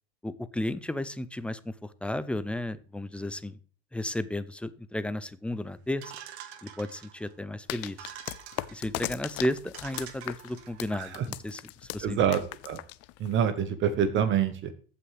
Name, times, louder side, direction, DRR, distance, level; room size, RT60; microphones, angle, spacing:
voice 1, 0.2-3.6 3.9-6.0 6.6-8.1 8.7-12.2, left 1 dB, 5° left, 14 dB, 0.3 m, -33 dB
sound 1, 6.0-7.3 7.9-8.9 9.4-9.5 9.7-10.9, right 10 dB, 90° right, 1.3 m, -46 dB
sound 2, 7.7-13.5, left 18 dB, 50° left, 0.6 m, -38 dB
voice 2, 12.0-12.8 13.2-14.7, right 8 dB, 40° right, 10 dB, 0.9 m, -26 dB
15.0 x 5.7 x 3.2 m, 0.40 s
supercardioid pair, 125°, 32 cm